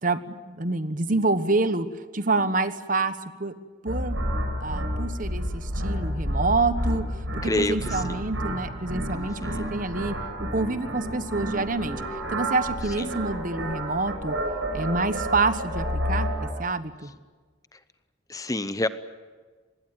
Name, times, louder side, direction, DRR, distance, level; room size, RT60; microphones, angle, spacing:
voice 1, 0.0-1.9 2.1-3.5 3.8-4.2 4.6-7.0 7.4-10.1 10.5-12.0 12.3-14.4 14.7-17.1, right 3 dB, 45° right, 12 dB, 1.2 m, -27 dB
sound 1, 3.9-16.5, equal, 75° right, 7.2 m, -30 dB
voice 2, 7.4-8.2 9.1-9.7 13.0-13.2 17.7-17.8 18.3-18.9, left 1 dB, 15° left, 12 dB, 0.8 m, -29 dB
25.0 x 20.5 x 9.3 m, 1.4 s
head